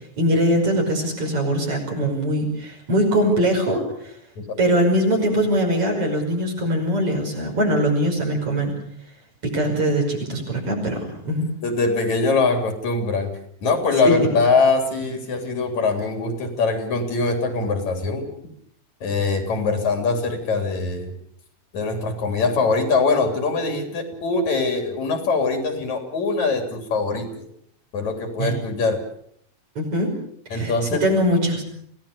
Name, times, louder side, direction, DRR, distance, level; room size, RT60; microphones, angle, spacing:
voice 1, 0.2-3.8 4.6-8.7 9.5-11.5 14.0-14.1 28.4-28.5 29.8-30.1 30.5-30.7 31.0-31.6, equal, 50° right, 1 dB, 6.6 m, -21 dB
voice 2, 11.6-13.3 13.6-18.3 19.0-21.1 21.7-27.5 27.9-29.0 30.5-31.0, left 4 dB, 75° left, 5 dB, 4.6 m, -22 dB
26.5 x 17.5 x 6.8 m, 0.67 s
omnidirectional pair, 3.3 m